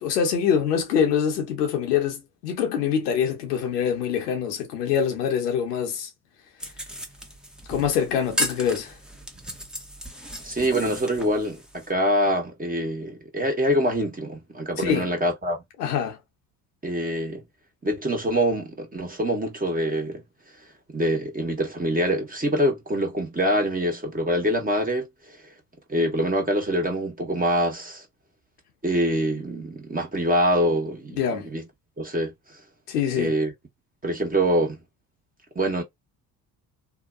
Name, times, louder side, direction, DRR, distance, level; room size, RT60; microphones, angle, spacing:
voice 1, 0.0-6.1 7.7-8.9 14.8-15.1 15.8-16.2 31.2-31.5 32.9-33.3, left 7 dB, 90° left, 0.9 m, -24 dB
sound 1, 6.6-11.9, equal, ahead, 0.8 m, -35 dB
voice 2, 10.4-15.6 16.8-17.4 17.8-20.2 20.9-25.4 25.9-28.0 28.8-31.7 32.0-32.3 33.2-33.5 34.0-34.8 35.5-35.8, equal, 20° right, 1.2 m, -25 dB
2.8 x 2.2 x 2.4 m
hypercardioid pair, 65°, 46 cm